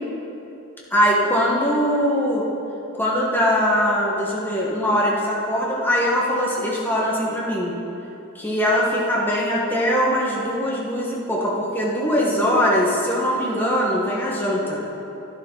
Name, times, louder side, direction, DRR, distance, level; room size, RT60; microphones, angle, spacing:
voice 1, 0.9-2.4 3.0-7.7 8.3-14.8, equal, 10° left, -5 dB, 1.5 m, -21 dB
11.5 x 10.5 x 4.0 m, 2.9 s
head